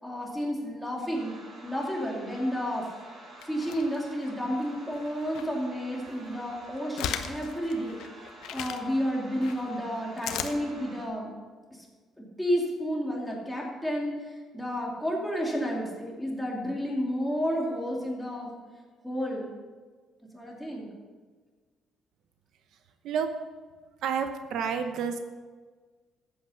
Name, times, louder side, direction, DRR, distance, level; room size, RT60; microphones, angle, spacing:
voice 1, 0.0-1.3 1.6-2.9 3.4-11.3 12.2-18.5 19.0-19.5 20.3-20.9, equal, ahead, -3 dB, 2.7 m, -31 dB
sound 1, 1.1-11.1, right 2 dB, 35° right, 2.7 m, -49 dB
sound 2, 3.4-4.3 4.9-5.5 6.0-8.8 9.4-10.5, left 9 dB, 85° left, 0.9 m, -37 dB
voice 2, 24.0-25.2, right 7 dB, 70° right, 7 dB, 0.8 m, -29 dB
13.5 x 8.6 x 5.7 m, 1.5 s
cardioid pair, 150°, 0 cm